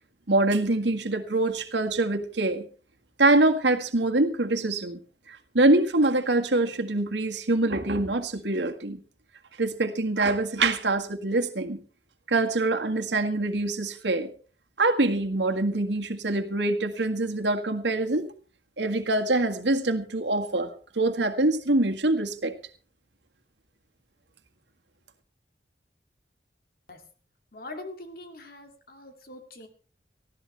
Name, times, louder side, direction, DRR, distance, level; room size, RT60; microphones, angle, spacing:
voice 1, 0.3-2.7 3.2-5.0 5.3-9.0 9.6-11.8 12.3-14.3 14.8-18.3 18.8-22.5, right 2 dB, 85° right, 6 dB, 1.8 m, -24 dB
voice 2, 27.5-29.7, left 2 dB, 55° left, 5 dB, 2.6 m, -42 dB
19.5 x 15.0 x 3.4 m, 0.39 s
head